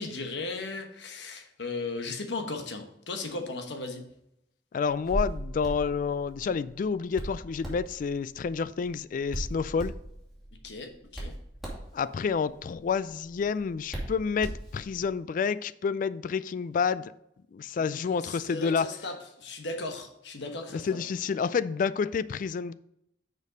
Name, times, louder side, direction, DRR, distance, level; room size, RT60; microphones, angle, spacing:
voice 1, 0.0-4.1 10.6-11.3 17.8-21.0, left 3 dB, 85° left, 1.2 m, -37 dB
voice 2, 4.7-9.9 11.9-17.1 17.5-18.9 20.7-22.7, left 5 dB, 50° left, 0.3 m, -29 dB
Hands, 4.8-15.1, right 1 dB, ahead, 2.6 m, -39 dB
6.6 x 5.2 x 5.0 m
head